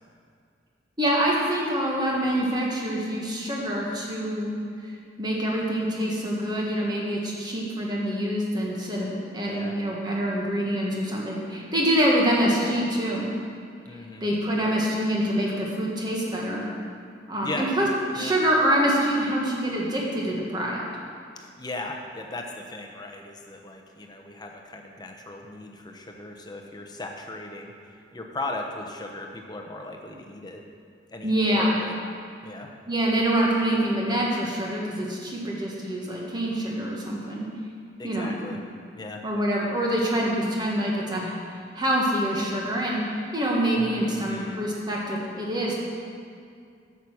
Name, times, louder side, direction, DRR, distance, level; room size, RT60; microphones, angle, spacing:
voice 1, 1.0-4.6 5.2-13.3 14.2-16.7 17.3-17.9 18.1-20.8 31.2-31.7 32.9-37.5 38.0-38.4 39.2-41.4 41.7-45.8, right 1 dB, 25° right, -3 dB, 1.6 m, -25 dB
voice 2, 9.4-9.7 13.9-14.3 14.6-14.7 17.4-17.7 18.2-18.3 21.4-30.6 31.1-31.9 32.4-32.7 38.0-38.6 38.9-39.2 43.8-44.6, left 2 dB, 20° left, 2 dB, 0.9 m, -37 dB
9.1 x 7.0 x 6.2 m, 2.3 s
head